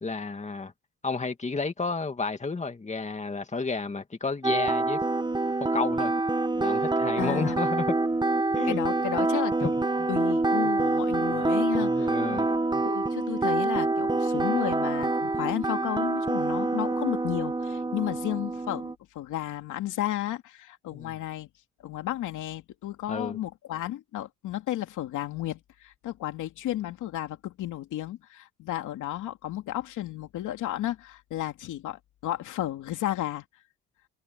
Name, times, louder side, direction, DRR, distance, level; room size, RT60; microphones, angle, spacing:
voice 1, 0.0-0.7 1.0-5.0 5.7-6.1 6.6-7.9 8.5-8.8 9.6-9.8 11.8-12.8 20.9-21.2 23.1-23.4, left 4 dB, 25° left, 2.3 m, -32 dB
sound 1, 4.4-18.9, right 2 dB, 15° right, 1.1 m, -26 dB
voice 2, 7.2-7.6 8.6-9.7 10.1-21.5 21.8-33.4, left 13 dB, 85° left, 2.7 m, -33 dB
cardioid pair, 90°, 30 cm